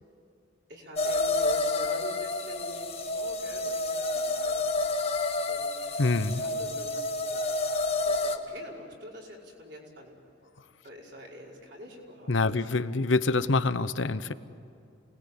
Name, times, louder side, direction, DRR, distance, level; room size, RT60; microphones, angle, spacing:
voice 1, 0.7-4.7 5.5-6.0 6.3-7.4 7.9-10.1 10.8-12.7, equal, 60° right, -2 dB, 5.4 m, -46 dB
sound 1, 1.0-8.4, left 2 dB, 30° left, 1.5 m, -29 dB
voice 2, 6.0-6.4 12.3-14.3, left 3 dB, 75° left, 13 dB, 0.9 m, -26 dB
28.5 x 20.0 x 8.4 m, 2.6 s
head